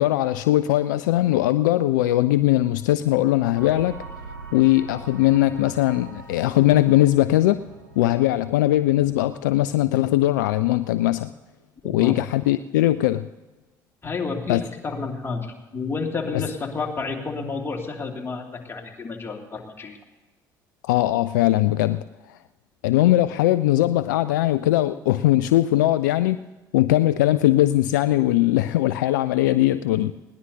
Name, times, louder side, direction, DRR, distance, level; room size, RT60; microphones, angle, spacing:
voice 1, 0.0-4.0 4.5-7.6 8.0-11.3 11.8-13.3 14.5-14.6 16.3-16.4 20.8-22.4 22.8-26.4 26.7-30.1, left 15 dB, 70° left, 14 dB, 0.4 m, -20 dB
sound 1, 3.5-11.6, right 3 dB, 90° right, 1.9 m, -43 dB
voice 2, 11.8-12.2 14.0-20.0, left 4 dB, 25° left, 0 dB, 2.6 m, -30 dB
20.5 x 18.5 x 2.8 m, 1.1 s
figure-of-eight pair, 50°, 10 cm